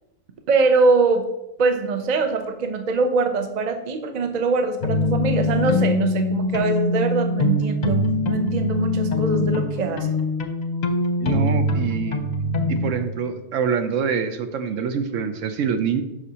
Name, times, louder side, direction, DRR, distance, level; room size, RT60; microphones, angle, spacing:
voice 1, 0.5-1.3 1.6-10.1, right 4 dB, 40° right, 6 dB, 0.7 m, -22 dB
sound 1, 4.8-12.9, left 2 dB, 40° left, 0.7 m, -23 dB
voice 2, 11.2-12.2 12.7-16.0, right 6 dB, 70° right, 8 dB, 0.9 m, -25 dB
11.5 x 5.1 x 2.8 m, 0.93 s
omnidirectional pair, 1.4 m